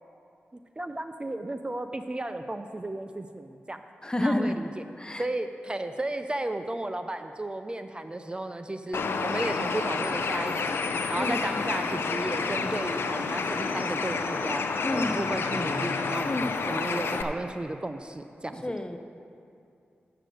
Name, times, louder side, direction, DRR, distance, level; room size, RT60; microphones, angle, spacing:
voice 1, 0.8-3.8 4.2-4.9 5.2-10.8 11.1-14.6 14.9-16.3 16.6-18.6, right 1 dB, 25° right, 8 dB, 0.4 m, -34 dB
voice 2, 4.0-4.6 5.0-5.2 11.2-11.4 14.8-15.3 16.2-16.6 18.6-19.0, left 1 dB, 20° left, 7 dB, 0.7 m, -29 dB
Bird, 8.9-17.2, left 4 dB, 75° left, 0.5 m, -29 dB
7.3 x 6.8 x 7.7 m, 2.5 s
cardioid pair, 55°, 4 cm